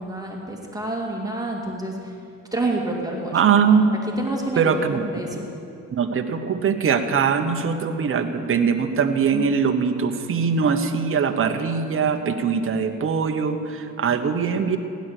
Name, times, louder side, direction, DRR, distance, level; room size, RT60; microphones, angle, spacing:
voice 1, 0.0-2.1 2.5-3.5 4.2-5.5, right 2 dB, 10° right, 0 dB, 2.2 m, -28 dB
voice 2, 3.3-4.1 4.6-5.0 5.9-14.8, right 6 dB, 45° right, 6 dB, 1.1 m, -21 dB
16.0 x 10.5 x 6.6 m, 2.5 s
cardioid pair, 90°, 30 cm